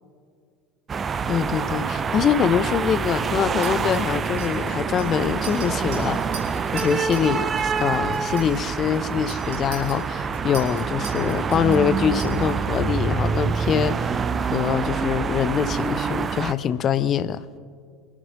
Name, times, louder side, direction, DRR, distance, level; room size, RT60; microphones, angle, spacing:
sound 1, 0.9-16.5, right 5 dB, 25° right, 0.5 m, -26 dB
voice 1, 1.3-6.2 6.7-17.5, left 8 dB, 35° left, 0.6 m, -24 dB
Chink clink, 3.6-7.3 7.6-7.9 8.1-12.7, right 6 dB, 55° right, 3.7 m, -41 dB
25.0 x 11.0 x 3.8 m
figure-of-eight pair, 75°, 0 cm